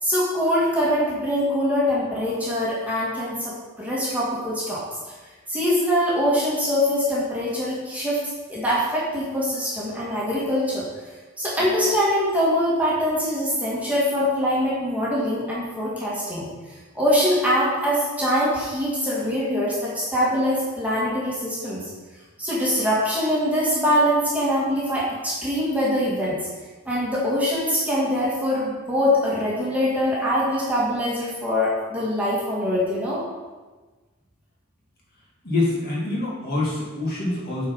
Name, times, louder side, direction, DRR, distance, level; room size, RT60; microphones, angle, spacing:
voice 1, 0.0-4.8 5.5-8.2 8.5-10.9 11.4-16.5 16.9-21.9 22.4-26.4 26.9-33.2, equal, 5° right, -7 dB, 1.7 m, -23 dB
voice 2, 35.4-37.7, left 2 dB, 45° left, -6 dB, 2.4 m, -25 dB
8.3 x 4.6 x 5.2 m, 1.3 s
head